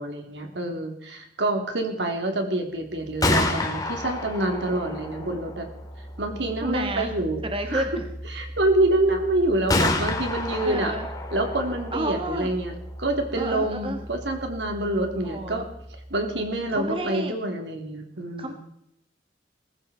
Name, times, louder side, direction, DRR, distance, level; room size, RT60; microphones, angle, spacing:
voice 1, 0.0-5.7 6.2-7.4 7.7-7.8 8.3-10.9 11.3-12.7 13.0-15.7 16.1-18.5, right 1 dB, 80° right, 4 dB, 3.3 m, -26 dB
Gunshot gunfire, 3.0-16.8, left 2 dB, 20° left, 2.5 m, -31 dB
voice 2, 6.6-7.1 7.4-8.1 10.6-11.1 11.9-12.5 13.3-14.1 15.2-15.6 16.7-17.4 18.4-18.5, right 1 dB, 30° right, 5 dB, 1.5 m, -30 dB
19.5 x 15.0 x 4.4 m, 0.75 s
head